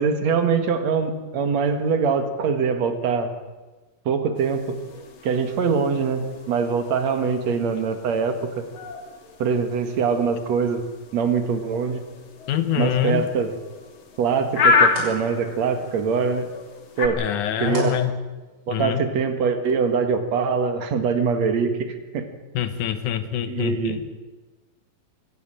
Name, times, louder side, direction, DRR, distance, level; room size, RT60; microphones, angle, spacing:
voice 1, 0.0-3.3 4.1-4.8 5.2-8.6 9.4-10.8 11.1-12.0 12.8-13.5 14.2-16.5 17.0-17.2 17.6-18.0 18.7-22.3 23.5-24.0, right 5 dB, 55° right, 8 dB, 2.6 m, -23 dB
sound 1, 4.3-17.1, left 4 dB, 40° left, 2.2 m, -29 dB
voice 2, 12.5-13.3 17.2-18.1 18.7-19.0 22.5-24.1, left 10 dB, 70° left, 11 dB, 2.2 m, -25 dB
sound 2, 13.5-18.9, right 1 dB, 20° right, 6.0 m, -43 dB
25.0 x 12.5 x 9.0 m, 1.2 s
omnidirectional pair, 4.3 m